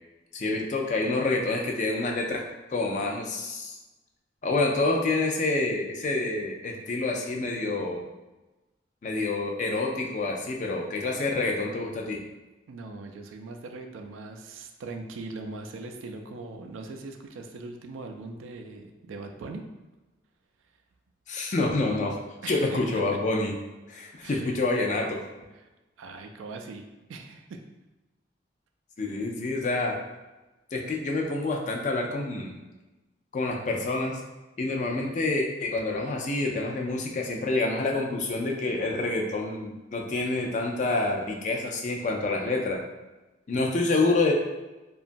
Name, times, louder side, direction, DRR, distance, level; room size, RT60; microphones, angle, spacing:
voice 1, 0.3-2.4 2.7-3.8 4.4-8.1 9.0-12.2 21.3-22.2 22.5-23.5 23.9-25.2 29.0-29.9 30.7-32.6 33.3-34.2 34.6-42.8 43.5-44.3, left 2 dB, 40° left, 1 dB, 0.3 m, -27 dB
voice 2, 12.7-19.6 22.4-23.0 24.2-24.5 25.5-25.7 26.0-26.8 27.1-27.6, right 3 dB, 90° right, 4 dB, 0.3 m, -40 dB
2.9 x 2.3 x 2.5 m, 1.1 s
head